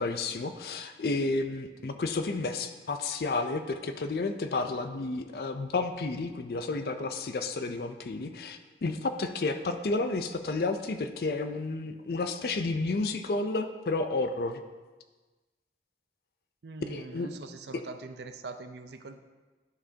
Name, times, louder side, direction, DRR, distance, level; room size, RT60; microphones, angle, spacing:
voice 1, 0.0-14.6 16.9-17.3, left 3 dB, 60° left, 8 dB, 0.4 m, -31 dB
voice 2, 16.6-19.2, right 3 dB, 70° right, 8 dB, 0.5 m, -42 dB
11.0 x 5.1 x 2.7 m, 1.3 s
head